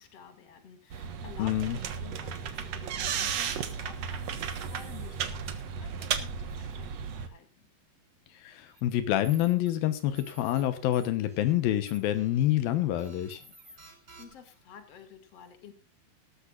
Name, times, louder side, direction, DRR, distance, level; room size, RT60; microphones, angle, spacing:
voice 1, 0.0-7.7 13.8-15.7, left 7 dB, 45° left, 7 dB, 3.3 m, -51 dB
sound 1, 0.9-7.3, right 7 dB, 55° right, 2.1 m, -34 dB
voice 2, 1.4-1.8 8.3-13.4, left 13 dB, 85° left, 10 dB, 2.9 m, -27 dB
sound 2, 8.7-8.8 9.2-9.7 10.1-10.6 10.9-11.5 11.9-12.4 13.0-14.6, right 2 dB, 30° right, 6.8 m, -53 dB
18.5 x 13.5 x 2.5 m, 0.30 s
omnidirectional pair, 4.2 m